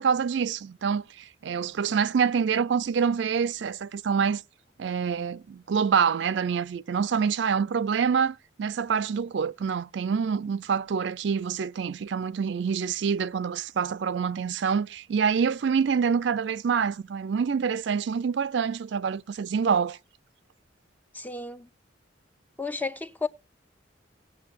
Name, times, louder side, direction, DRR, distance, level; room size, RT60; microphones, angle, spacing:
voice 1, 0.0-4.4 4.8-20.0, right 6 dB, 65° right, 0.4 m, -26 dB
voice 2, 21.1-21.7 22.6-23.3, left 3 dB, 10° left, 0.4 m, -32 dB
19.0 x 7.3 x 2.4 m
head